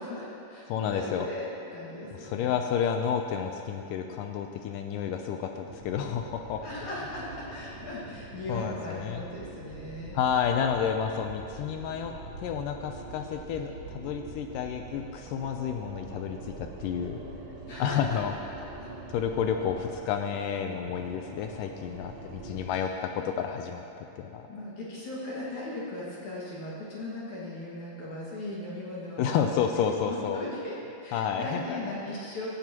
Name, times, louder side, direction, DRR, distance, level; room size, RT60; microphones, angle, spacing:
voice 1, 0.0-2.5 6.6-10.2 17.7-18.2 18.8-18.9 22.8-22.9 24.5-30.8 31.0-32.5, left 1 dB, 60° left, -7 dB, 3.1 m, -38 dB
voice 2, 0.7-1.3 2.2-6.8 8.5-9.2 10.1-12.1 12.4-17.2 17.8-18.3 19.1-23.8 24.2-24.5 29.2-30.4 31.1-31.8, left 8 dB, 80° left, 4 dB, 2.1 m, -30 dB
sound 1, 5.7-22.8, right 3 dB, 70° right, 1.1 m, -45 dB
15.5 x 15.5 x 2.9 m, 2.8 s
omnidirectional pair, 3.9 m